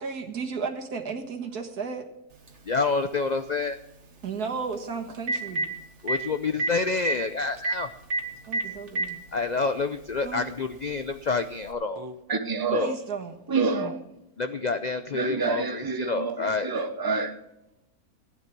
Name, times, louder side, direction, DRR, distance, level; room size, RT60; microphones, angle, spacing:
voice 1, 0.0-2.1 4.2-5.7 8.5-9.2 10.2-10.5 12.8-13.3, right 5 dB, 85° right, 2.1 m, -34 dB
Telephone, 2.5-2.6 4.7-4.8 5.1-5.7 6.1-6.2 6.6-6.7 7.0-7.2 7.6-7.8 8.1-8.2 8.5-9.1 10.1-10.2 11.6-11.7, right 2 dB, 50° right, 1.9 m, -26 dB
voice 2, 2.6-3.8 6.0-7.9 9.3-12.1 12.7-12.9 14.4-16.7, left 4 dB, 75° left, 0.4 m, -28 dB
voice 3, 12.0-12.9 13.5-14.0 15.1-17.3, right 4 dB, 20° right, 0.8 m, -28 dB
16.0 x 9.6 x 5.9 m
omnidirectional pair, 1.6 m